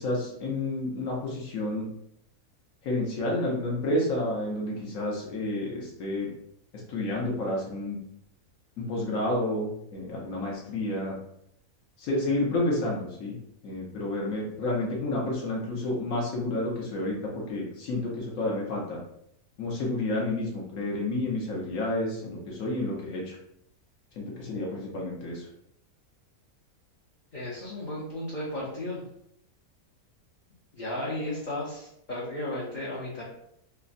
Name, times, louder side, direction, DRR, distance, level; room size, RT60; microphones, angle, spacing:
voice 1, 0.0-1.9 2.8-6.3 6.9-8.0 8.8-11.2 12.0-13.4 13.6-19.0 19.6-23.4 24.2-25.5, left 1 dB, 70° left, -3 dB, 1.1 m, -30 dB
voice 2, 27.3-29.0 30.7-33.2, left 1 dB, 50° left, -7 dB, 0.6 m, -34 dB
3.4 x 2.0 x 2.5 m, 0.73 s
omnidirectional pair, 1.5 m